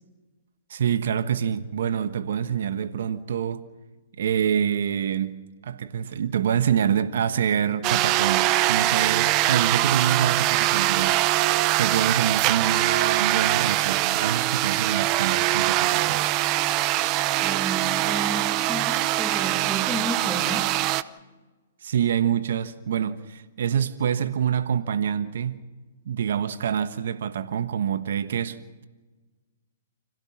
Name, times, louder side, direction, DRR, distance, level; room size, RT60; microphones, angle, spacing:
voice 1, 0.7-3.6 4.2-11.2 11.8-16.2 21.8-25.6 26.0-28.6, right 8 dB, 70° right, 1.2 m, -26 dB
sound 1, 7.8-21.0, right 16 dB, 35° right, 0.7 m, -23 dB
voice 2, 17.4-20.8, right 2 dB, ahead, 2.5 m, -32 dB
28.5 x 17.0 x 6.1 m
hypercardioid pair, 135°, 0 cm